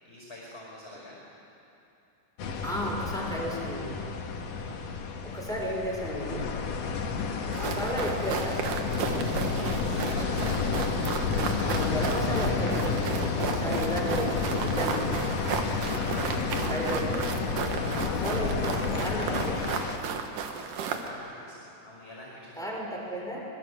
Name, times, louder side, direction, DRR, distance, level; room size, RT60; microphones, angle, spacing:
voice 1, 0.0-1.2 4.5-4.8 9.5-11.2 15.9-16.2 21.0-23.2, left 1 dB, 20° left, -4 dB, 5.4 m, -46 dB
sound 1, 2.4-20.0, left 5 dB, 80° left, 3.3 m, -30 dB
voice 2, 2.6-4.0 5.2-6.5 7.4-8.6 11.6-12.9 13.4-15.2 16.7-17.2 18.0-19.6 22.6-23.4, equal, ahead, -3 dB, 5.2 m, -33 dB
sound 2, 7.5-21.1, right 6 dB, 80° right, 3.0 m, -34 dB
sound 3, 10.3-18.6, right 1 dB, 50° right, 6.7 m, -50 dB
26.0 x 21.5 x 8.2 m, 2.8 s
omnidirectional pair, 3.7 m